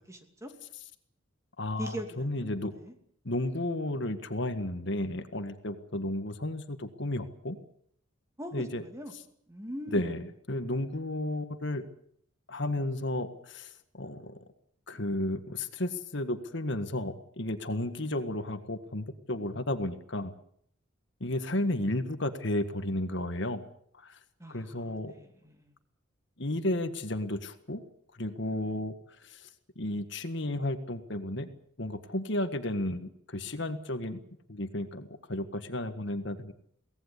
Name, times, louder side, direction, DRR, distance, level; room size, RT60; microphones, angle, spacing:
voice 1, 0.1-0.5 1.8-2.5 2.7-2.9 8.4-9.1 9.5-10.1 24.4-25.7, equal, 15° right, 5 dB, 2.8 m, -41 dB
voice 2, 1.6-2.7 3.2-7.6 8.5-8.8 9.9-11.9 12.5-14.4 14.9-20.3 21.2-23.6 24.0-24.2 24.5-25.1 26.4-27.8 28.2-28.9 29.2-29.5 29.7-31.5 31.8-34.2 34.5-36.5, left 1 dB, 55° left, 9 dB, 1.7 m, -33 dB
23.5 x 18.0 x 8.3 m, 0.68 s
head